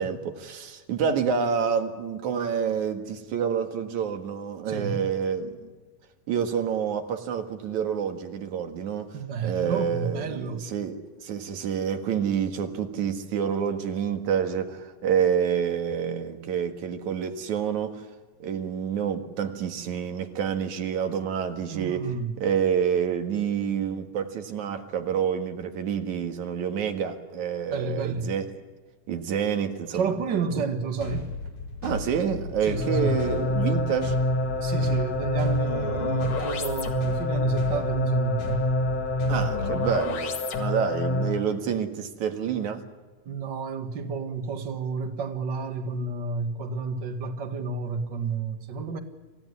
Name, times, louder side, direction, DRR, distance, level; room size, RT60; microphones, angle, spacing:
voice 1, 0.0-5.7 6.3-18.1 18.4-22.1 22.4-28.5 29.1-30.6 31.8-34.2 39.3-42.8, right 7 dB, 70° right, 3.1 m, -28 dB
voice 2, 4.7-5.1 9.1-10.6 21.7-22.3 27.7-28.3 29.9-31.3 32.7-33.2 34.6-38.7 43.3-49.0, right 5 dB, 40° right, 2.0 m, -31 dB
sound 1, 31.0-39.8, left 3 dB, 75° left, 7.2 m, -35 dB
sound 2, 32.7-41.5, left 1 dB, 55° left, 3.1 m, -27 dB
27.5 x 16.0 x 9.8 m
omnidirectional pair, 3.6 m